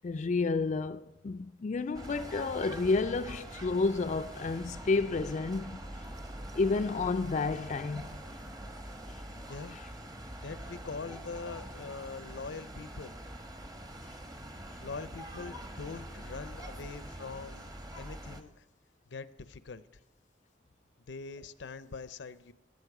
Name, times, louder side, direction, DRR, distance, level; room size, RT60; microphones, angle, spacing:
voice 1, 0.0-6.1 6.6-8.2 9.1-9.2 9.7-9.9, left 3 dB, 40° left, 0.4 m, -31 dB
sound 1, 1.9-18.4, right 1 dB, 20° right, 1.0 m, -44 dB
voice 2, 9.5-9.8 10.4-13.1 14.8-18.6 19.1-19.9 21.0-22.5, left 4 dB, 85° left, 0.6 m, -43 dB
16.0 x 10.5 x 4.8 m
head